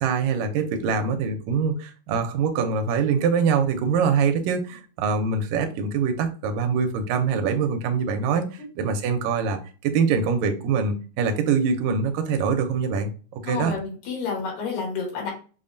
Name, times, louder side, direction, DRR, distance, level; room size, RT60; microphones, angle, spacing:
voice 1, 0.0-13.7, right 5 dB, 80° right, 5 dB, 1.8 m, -24 dB
voice 2, 13.4-15.3, left 5 dB, 85° left, -3 dB, 2.8 m, -29 dB
5.3 x 2.1 x 2.5 m, 0.37 s
omnidirectional pair, 3.4 m